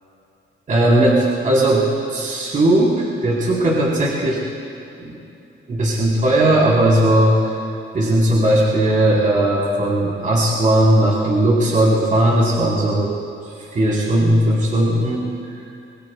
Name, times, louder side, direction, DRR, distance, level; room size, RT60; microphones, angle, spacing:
voice 1, 0.7-4.4 5.0-5.2 5.7-7.4 7.9-13.1 13.7-15.3, right 1 dB, 40° right, -5 dB, 3.9 m, -17 dB
26.5 x 20.5 x 2.3 m, 2.8 s
cardioid pair, 90°, 20 cm